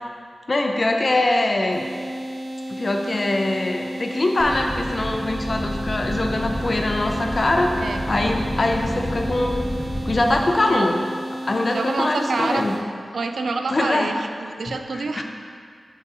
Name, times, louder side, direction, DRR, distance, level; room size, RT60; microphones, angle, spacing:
voice 1, 0.5-1.8 2.7-7.7 8.1-9.6 10.1-11.0 11.4-12.8 13.7-14.1 14.9-15.2, left 2 dB, 45° left, 2 dB, 0.5 m, -22 dB
sound 1, 1.7-12.8, right 1 dB, 60° right, 1.1 m, -33 dB
sound 2, 4.4-10.4, equal, 10° right, 1.3 m, -30 dB
voice 2, 11.7-12.6 13.1-15.2, right 3 dB, 85° right, 6 dB, 0.3 m, -27 dB
5.4 x 3.8 x 4.9 m, 2.1 s
wide cardioid pair, 105°, 0 cm